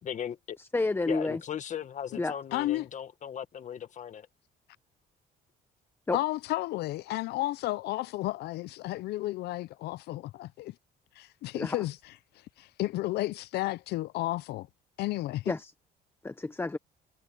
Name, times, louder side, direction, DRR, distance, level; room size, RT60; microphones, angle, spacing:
voice 1, 0.0-0.6 1.1-4.3, left 9 dB, 45° left, 1.8 m, -37 dB
voice 2, 0.6-1.4 2.2-2.4 6.1-6.2 11.5-11.8 15.5-15.7 16.2-16.8, left 3 dB, 15° left, 0.9 m, -30 dB
voice 3, 2.5-2.9 6.1-10.7 11.2-12.0 12.6-14.7 15.0-15.5, left 17 dB, 75° left, 0.6 m, -32 dB
cardioid pair, 110°, 17 cm